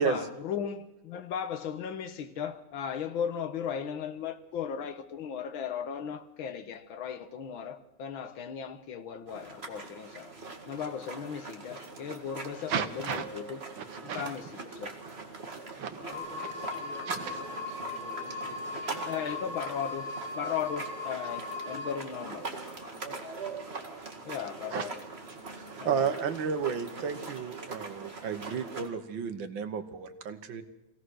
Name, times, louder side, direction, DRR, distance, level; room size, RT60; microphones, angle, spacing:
voice 1, 0.0-10.3 10.7-13.6 14.0-14.9 19.1-20.1 20.4-22.4 23.1-23.2 24.3-25.0 25.8-26.1, left 8 dB, 70° left, 2.0 m, -36 dB
sound 1, 9.3-28.9, right 3 dB, 30° right, 2.2 m, -42 dB
voice 2, 12.7-13.3 13.8-14.3 15.8-16.0 17.3-17.4 24.7-24.9 25.5-30.6, right 6 dB, 65° right, 1.8 m, -32 dB
voice 3, 15.9-19.7 20.2-20.5 21.8-23.2, left 1 dB, 5° left, 3.7 m, -49 dB
sound 2, 16.1-21.9, left 3 dB, 50° left, 7.8 m, -38 dB
25.0 x 17.0 x 6.4 m
omnidirectional pair, 2.3 m